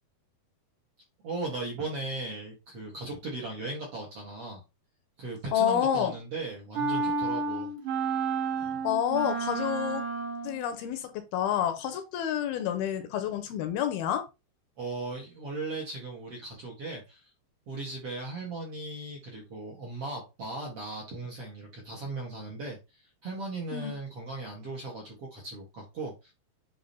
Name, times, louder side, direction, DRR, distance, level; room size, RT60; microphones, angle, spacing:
voice 1, 1.2-4.6 5.2-7.7 8.6-8.9 14.8-17.3 17.7-26.3, right 2 dB, 55° right, -2 dB, 1.7 m, -37 dB
voice 2, 5.5-6.1 8.8-10.0 10.4-14.2 23.7-24.0, left 9 dB, 75° left, 9 dB, 2.5 m, -29 dB
sound 1, 6.7-10.6, right 4 dB, 90° right, 1.2 m, -31 dB
8.8 x 3.0 x 4.0 m, 0.25 s
omnidirectional pair, 4.6 m